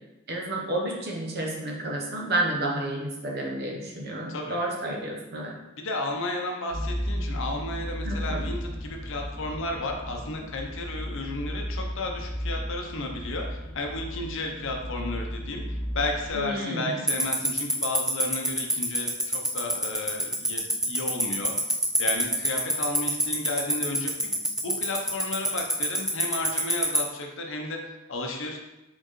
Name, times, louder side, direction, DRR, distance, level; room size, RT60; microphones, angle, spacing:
voice 1, 0.3-5.5 8.0-8.5 16.3-17.0, right 1 dB, 50° right, 0 dB, 0.9 m, -30 dB
voice 2, 5.8-21.5 22.0-24.3 24.6-28.6, left 2 dB, 65° left, 2 dB, 0.7 m, -33 dB
sound 1, 6.7-16.3, equal, 45° left, 1.5 m, -34 dB
Tick-tock, 17.1-27.0, right 1 dB, 5° right, 0.5 m, -23 dB
4.4 x 3.8 x 3.1 m, 0.98 s
head